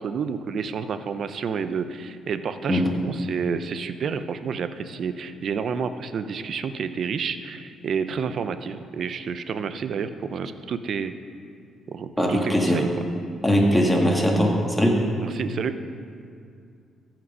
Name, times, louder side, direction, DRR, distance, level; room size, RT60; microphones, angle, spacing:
voice 1, 0.0-11.2 11.9-12.9 15.2-15.8, right 6 dB, 60° right, 11 dB, 0.5 m, -29 dB
voice 2, 12.2-12.8 13.4-15.0, equal, 5° left, -1 dB, 1.9 m, -20 dB
14.5 x 6.0 x 5.5 m, 2.3 s
cardioid pair, 90°, 0 cm